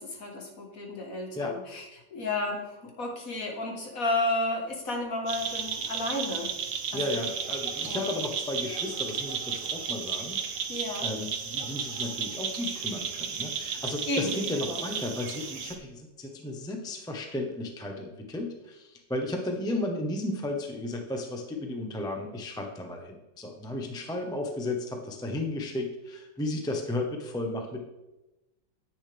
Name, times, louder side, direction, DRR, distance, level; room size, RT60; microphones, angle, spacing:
voice 1, 0.0-1.8 2.1-6.5 6.9-7.2 7.9-8.1 10.7-11.1 14.1-14.8, left 2 dB, 50° left, 1 dB, 1.9 m, -32 dB
sound 1, 5.3-15.7, right 6 dB, 80° right, 1.7 m, -34 dB
voice 2, 6.9-27.8, left 2 dB, 5° left, 2 dB, 0.7 m, -34 dB
10.0 x 8.8 x 3.5 m, 0.99 s
omnidirectional pair, 2.0 m